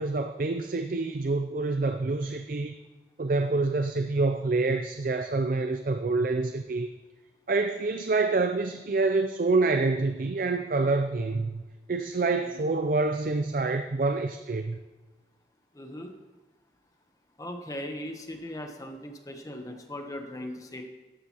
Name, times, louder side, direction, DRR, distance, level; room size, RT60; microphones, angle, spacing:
voice 1, 0.0-2.8 3.2-6.9 7.5-11.6 11.9-14.8, right 3 dB, 50° right, 8 dB, 0.4 m, -27 dB
voice 2, 15.7-16.1 17.4-20.8, left 1 dB, 20° left, 4 dB, 0.9 m, -38 dB
13.0 x 11.5 x 2.9 m, 1.2 s
head